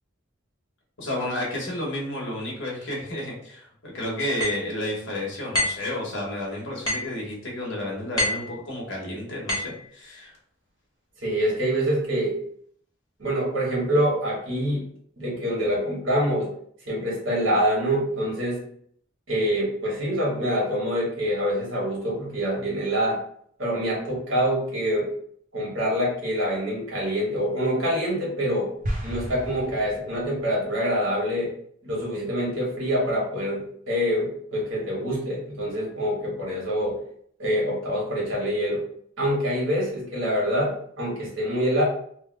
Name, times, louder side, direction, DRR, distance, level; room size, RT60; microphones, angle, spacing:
voice 1, 1.0-10.4, left 1 dB, 65° left, -3 dB, 1.2 m, -31 dB
sound 1, 4.4-4.6 5.5-5.9 6.9-7.2 8.2-8.5 9.5-9.8, left 1 dB, 20° left, 1.2 m, -26 dB
voice 2, 11.2-12.4 13.2-14.8 15.2-16.5 16.9-18.6 19.3-23.2 23.6-25.1 25.5-28.7 29.0-31.5 31.8-37.0 37.4-38.8 39.2-41.8, equal, 85° right, -4 dB, 1.4 m, -25 dB
sound 2, 28.8-30.5, equal, 40° right, 0.7 m, -33 dB
3.3 x 2.2 x 3.2 m, 0.64 s
head